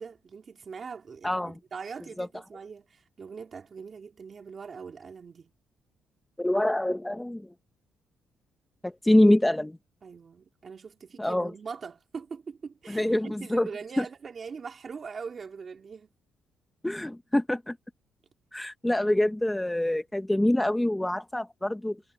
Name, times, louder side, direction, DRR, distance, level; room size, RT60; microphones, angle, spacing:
voice 1, 0.0-5.5 10.0-16.1, right 5 dB, 45° right, 2.6 m, -42 dB
voice 2, 1.2-1.6 2.2-2.3 6.4-7.5 8.8-9.8 11.2-11.5 12.9-13.7 14.0-14.1 16.8-17.8 18.5-22.0, left 1 dB, 10° left, 0.9 m, -25 dB
cardioid pair, 90°, 0 cm